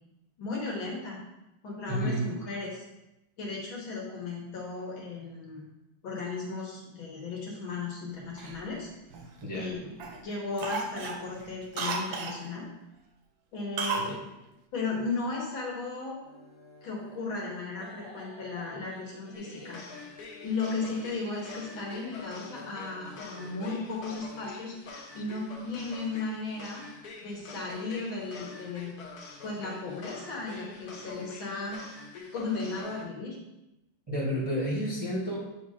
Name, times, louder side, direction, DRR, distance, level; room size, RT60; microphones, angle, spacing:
voice 1, 0.4-1.2 1.6-2.8 3.4-5.6 6.0-8.9 9.5-10.0 10.2-12.7 13.5-14.1 14.7-16.1 16.8-19.8 20.4-26.8 27.2-29.0 29.4-31.8 32.3-33.4, left 3 dB, 75° left, -3 dB, 2.0 m, -35 dB
voice 2, 1.9-2.3 9.4-9.7 14.1-14.2 34.1-35.4, equal, 20° right, -6 dB, 0.8 m, -30 dB
Cough, 8.4-9.6 10.0-10.2 10.6-12.4 13.8-14.1 14.4-14.5, right 4 dB, 75° right, 1.4 m, -34 dB
sound 1, 16.2-24.2, left 2 dB, 30° left, 0.5 m, -51 dB
sound 2, 19.3-33.0, left 3 dB, 55° left, 1.3 m, -46 dB
8.0 x 2.8 x 4.8 m, 0.93 s
omnidirectional pair, 2.2 m